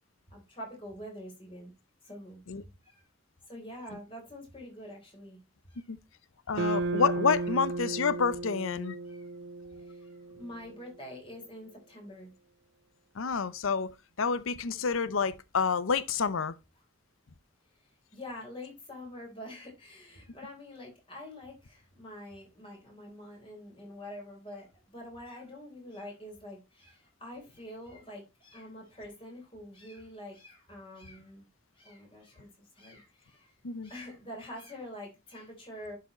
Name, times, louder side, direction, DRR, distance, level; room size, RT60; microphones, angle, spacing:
voice 1, 0.3-1.7 2.0-2.4 2.8-3.0 3.5-5.4 5.7-5.9 6.5-6.7 9.0-9.3 9.8-12.3 17.8-31.5 31.7-33.5 33.8-36.0, left 1 dB, 25° left, 3.8 m, -46 dB
voice 2, 6.5-9.0 13.2-13.9 14.2-16.5 33.6-33.9, left 5 dB, 85° left, 0.7 m, -28 dB
sound 1, 6.5-10.9, right 3 dB, 60° right, 0.4 m, -35 dB
11.0 x 4.9 x 4.3 m
head